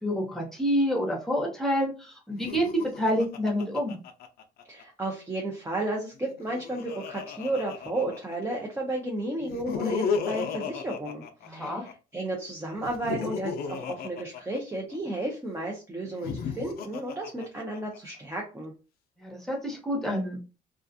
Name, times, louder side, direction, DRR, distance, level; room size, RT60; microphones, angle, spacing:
voice 1, 0.0-4.0 11.5-11.9 19.2-20.4, equal, ahead, -2 dB, 1.0 m, -28 dB
Laughter, 2.3-4.8 6.2-8.5 9.4-11.9 12.8-15.2 16.0-18.0, left 6 dB, 65° left, 0.5 m, -34 dB
voice 2, 4.7-18.7, right 2 dB, 15° right, -1 dB, 0.6 m, -33 dB
2.4 x 2.3 x 2.5 m, 0.33 s
cardioid pair, 110°, 17 cm